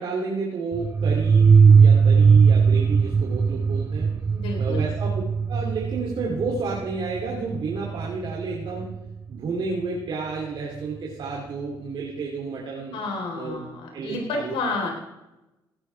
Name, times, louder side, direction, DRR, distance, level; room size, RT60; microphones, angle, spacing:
voice 1, 0.0-4.1 4.6-5.1 5.5-8.9 9.3-13.0 13.3-13.6 13.9-14.5, right 4 dB, 70° right, -2 dB, 2.8 m, -31 dB
sound 1, 0.7-9.1, right 5 dB, 30° right, 0.3 m, -19 dB
voice 2, 4.3-4.8 12.9-14.9, left 3 dB, 85° left, 1 dB, 4.0 m, -30 dB
16.5 x 12.5 x 3.4 m, 0.99 s
cardioid pair, 80°, 9 cm